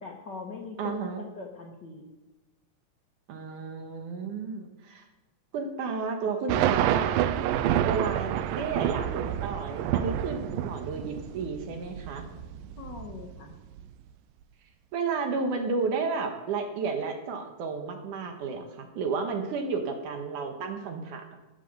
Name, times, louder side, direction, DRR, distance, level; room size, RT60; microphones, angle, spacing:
voice 1, 0.0-0.9 1.4-2.1 12.8-13.5, left 4 dB, 85° left, 1 dB, 0.9 m, -41 dB
voice 2, 0.8-1.2 3.3-5.0 5.5-7.2 7.8-12.3 14.9-21.4, right 4 dB, 70° right, 5 dB, 2.6 m, -32 dB
sound 1, 6.5-13.8, right 11 dB, 85° right, 2.3 m, -28 dB
13.5 x 7.5 x 6.7 m, 1.1 s
omnidirectional pair, 4.0 m